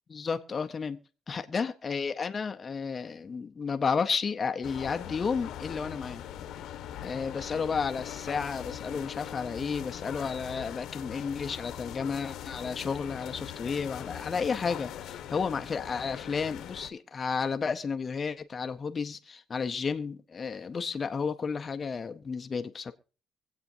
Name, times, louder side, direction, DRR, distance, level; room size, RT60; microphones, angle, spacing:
voice 1, 0.1-1.0 1.3-6.2 7.0-22.9, left 5 dB, 30° left, 0.6 m, -32 dB
sound 1, 4.6-16.9, left 10 dB, 80° left, 0.9 m, -41 dB
24.0 x 8.2 x 2.6 m
cardioid pair, 145°, 0 cm